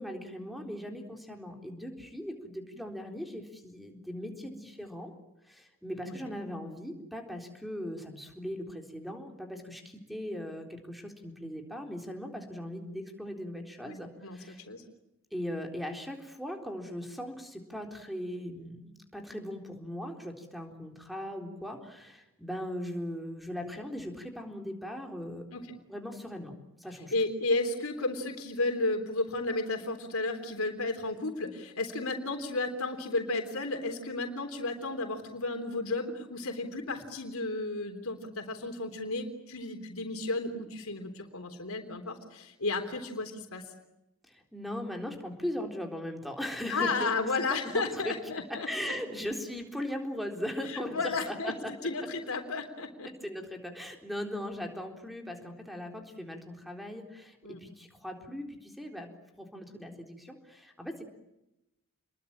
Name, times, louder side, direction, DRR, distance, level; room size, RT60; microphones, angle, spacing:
voice 1, 0.0-5.1 5.5-14.6 15.3-25.4 25.9-27.1 44.3-47.1 47.5-48.1 48.7-51.7 53.2-59.1 59.4-61.0, equal, ahead, 3 dB, 3.9 m, -39 dB
voice 2, 13.9-14.8 25.5-25.6 27.1-43.6 46.7-48.9 50.6-51.5 51.8-53.1 57.4-57.6, left 3 dB, 80° left, 4 dB, 3.6 m, -33 dB
28.5 x 22.0 x 8.8 m, 0.91 s
head